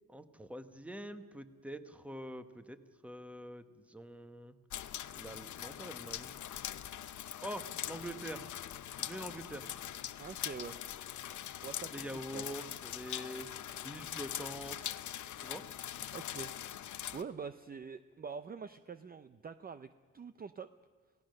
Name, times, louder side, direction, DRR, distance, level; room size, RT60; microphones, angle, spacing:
voice 1, 0.0-2.8 3.0-4.6 5.1-6.4 7.4-8.5 9.0-9.7 11.9-13.5 13.8-14.9 15.4-15.6, right 1 dB, 5° right, 10 dB, 1.1 m, -45 dB
sound 1, 4.7-17.2, left 11 dB, 65° left, 0.8 m, -42 dB
voice 2, 10.2-10.8 11.6-12.1 12.3-12.5 16.1-16.5 17.1-19.9 20.1-20.7, right 6 dB, 30° right, 11 dB, 0.5 m, -45 dB
28.0 x 17.5 x 6.5 m, 1.4 s
wide cardioid pair, 150°, 32 cm